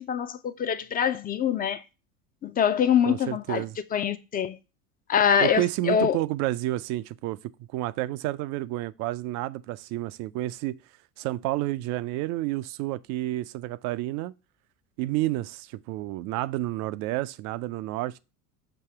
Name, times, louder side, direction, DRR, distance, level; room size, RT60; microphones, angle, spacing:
voice 1, 0.0-1.8 2.4-3.6 3.9-4.6 5.1-6.2, left 8 dB, 20° left, 0.5 m, -24 dB
voice 2, 3.1-3.8 5.4-10.8 11.2-14.3 15.0-18.2, right 16 dB, 40° right, 0.4 m, -30 dB
6.8 x 2.7 x 5.7 m
hypercardioid pair, 90°, 46 cm